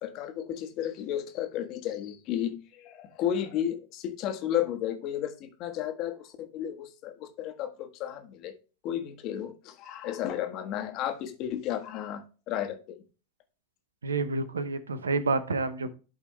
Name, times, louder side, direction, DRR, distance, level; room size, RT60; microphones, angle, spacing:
voice 1, 0.0-8.6 8.8-13.0, left 10 dB, 50° left, 1.5 m, -33 dB
voice 2, 14.0-16.0, right 3 dB, 90° right, 0.8 m, -29 dB
11.5 x 4.0 x 3.2 m
hypercardioid pair, 95°, 0 cm